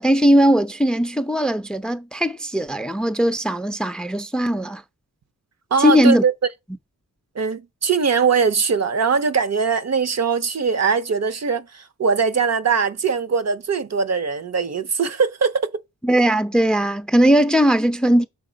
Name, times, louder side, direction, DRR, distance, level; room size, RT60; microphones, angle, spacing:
voice 1, 0.0-4.8 5.8-6.2 16.0-18.3, equal, 5° left, 0.4 m, -18 dB
voice 2, 5.7-6.3 7.4-15.7, right 5 dB, 50° right, 0.6 m, -21 dB
6.5 x 3.9 x 5.0 m
wide cardioid pair, 80°, 34 cm